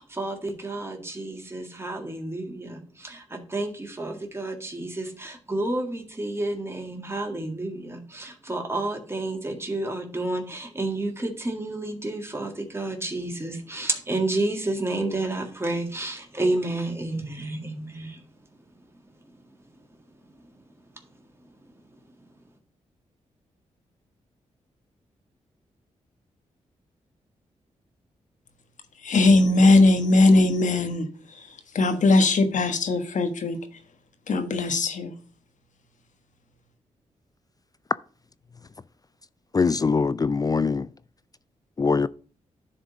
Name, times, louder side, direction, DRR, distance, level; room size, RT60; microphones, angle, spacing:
voice 1, 0.0-18.2, right 2 dB, 20° right, 1.8 m, -30 dB
voice 2, 29.0-31.1 31.7-33.6 34.3-35.1, left 2 dB, 65° left, 1.3 m, -19 dB
voice 3, 39.5-40.9 41.8-42.1, left 4 dB, 30° left, 0.3 m, -22 dB
10.0 x 3.7 x 5.1 m
cardioid pair, 50°, 14 cm